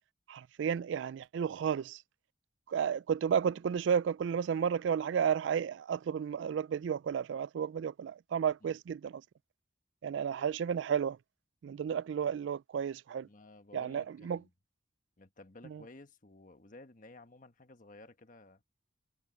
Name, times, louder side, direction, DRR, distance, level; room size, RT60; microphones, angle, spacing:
voice 1, 0.3-2.0 2.7-9.2 10.0-11.2 11.6-13.3 13.7-14.4 15.7-15.8, right 7 dB, 75° right, 0.3 m, -32 dB
voice 2, 13.2-14.5 15.2-18.6, left 2 dB, 45° left, 1.3 m, -54 dB
head